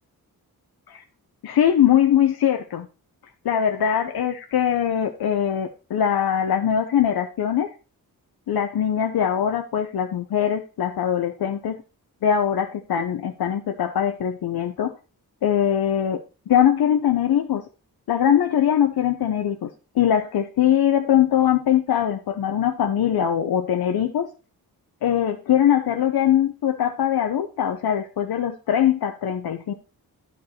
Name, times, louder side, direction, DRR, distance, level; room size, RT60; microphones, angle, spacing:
voice 1, 1.4-2.9 3.4-7.7 8.5-11.8 12.2-14.9 15.4-16.2 16.5-17.6 18.1-19.7 19.9-24.3 25.0-29.7, left 9 dB, 85° left, 5 dB, 0.8 m, -21 dB
11.0 x 4.7 x 4.3 m, 0.34 s
wide cardioid pair, 130°, 36 cm